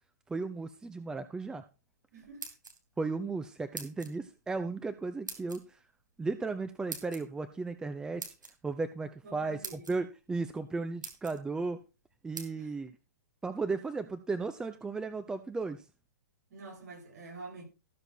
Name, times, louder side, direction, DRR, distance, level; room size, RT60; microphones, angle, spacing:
voice 1, 0.3-1.6 3.0-5.6 6.2-8.3 8.6-11.8 12.2-12.9 13.4-15.8, right 3 dB, 5° right, 0.7 m, -35 dB
voice 2, 2.1-2.5 9.2-9.8 12.5-12.7 16.5-17.7, right 3 dB, 55° right, 6.7 m, -47 dB
sound 1, 2.2-3.0 3.7-4.2 5.3-5.6 6.9-7.2 8.2-8.5 9.2-9.3 9.6-9.9 10.6-10.7 11.0-11.4 12.4-12.5, right 3 dB, 80° right, 2.9 m, -42 dB
14.0 x 6.8 x 4.4 m
figure-of-eight pair, 115°, 10 cm